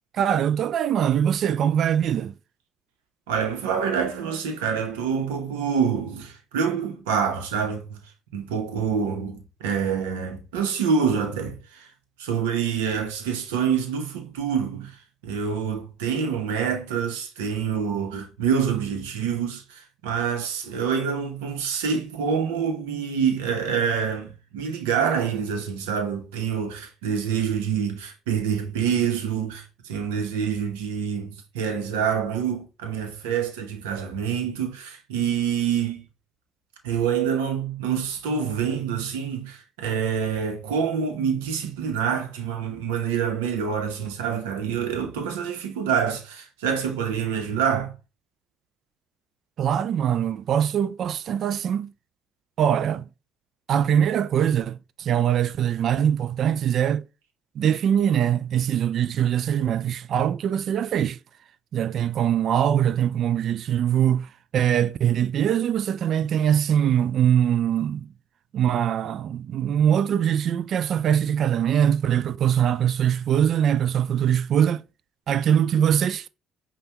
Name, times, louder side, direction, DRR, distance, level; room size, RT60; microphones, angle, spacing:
voice 1, 0.1-2.3 49.6-51.9 52.6-53.1 53.7-57.0 57.6-61.2 61.7-68.1 68.5-74.8 75.3-76.3, right 9 dB, 60° right, 0.3 m, -22 dB
voice 2, 3.3-8.0 8.3-11.9 12.2-15.0 15.2-36.1 36.8-47.9, right 7 dB, 90° right, 0.9 m, -26 dB
5.4 x 2.3 x 2.9 m
supercardioid pair, 65°, 0 cm